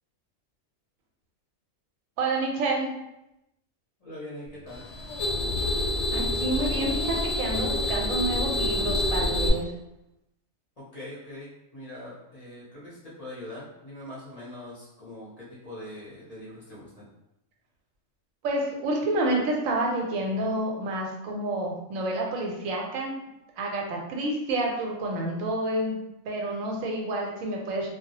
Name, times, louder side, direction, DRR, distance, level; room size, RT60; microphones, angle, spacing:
voice 1, 2.2-2.9 6.1-9.7 18.4-23.1 23.6-26.0 26.3-27.9, right 2 dB, 90° right, 0 dB, 1.0 m, -29 dB
voice 2, 4.0-4.8 10.8-17.1, left 1 dB, 40° left, -8 dB, 0.6 m, -42 dB
sound 1, 4.7-9.5, left 1 dB, 70° left, 0.8 m, -27 dB
2.3 x 2.0 x 2.8 m, 0.88 s
omnidirectional pair, 1.4 m